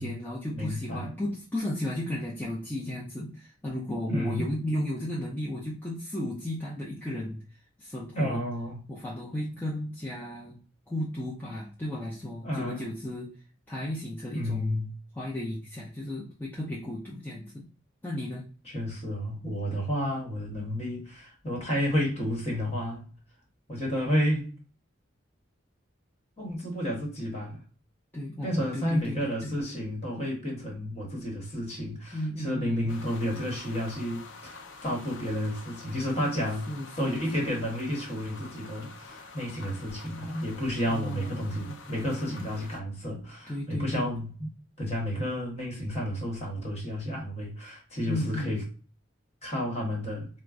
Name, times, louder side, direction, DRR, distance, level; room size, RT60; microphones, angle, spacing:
voice 1, 0.0-7.4 7.8-8.4 8.9-10.6 10.9-13.3 13.7-14.8 15.1-17.6 18.0-18.5 28.1-29.6 32.1-32.9 36.7-37.6 40.8-41.4 43.5-44.1 48.1-48.6, left 1 dB, 10° left, 0.5 m, -34 dB
voice 2, 0.5-1.1 4.1-4.5 8.1-8.8 12.4-12.8 14.3-14.9 18.6-23.1 23.7-24.5 26.4-27.6 28.4-36.7 37.0-44.5 44.8-48.6 49.4-50.3, equal, 30° left, 1.2 m, -31 dB
sound 1, 32.9-42.8, left 4 dB, 70° left, 0.5 m, -47 dB
4.5 x 2.1 x 2.4 m
head